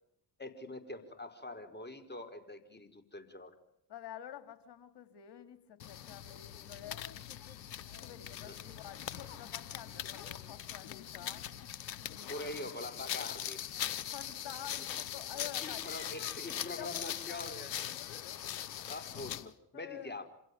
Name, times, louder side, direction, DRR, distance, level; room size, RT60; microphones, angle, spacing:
voice 1, 0.4-3.6 8.5-8.6 12.3-13.6 14.8-14.9 15.6-17.8 18.9-20.3, left 2 dB, 20° left, 8 dB, 4.7 m, -44 dB
voice 2, 3.9-7.1 8.0-11.5 12.0-12.7 13.9-15.9 16.8-17.4 18.8-18.9 19.7-20.2, left 10 dB, 55° left, 9 dB, 3.6 m, -49 dB
sound 1, 5.8-19.5, left 10 dB, 85° left, 0.9 m, -41 dB
27.0 x 17.0 x 9.8 m, 0.77 s
hypercardioid pair, 45°, 49 cm